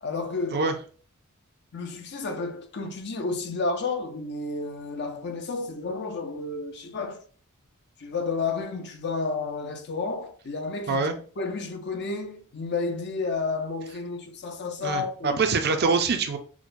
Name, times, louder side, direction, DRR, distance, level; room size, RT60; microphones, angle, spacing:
voice 1, 0.0-0.7 1.7-7.2 8.0-11.0 11.4-15.4, left 3 dB, 50° left, 0.6 m, -31 dB
voice 2, 14.8-16.4, right 4 dB, 50° right, 0.5 m, -24 dB
6.0 x 2.2 x 2.5 m
head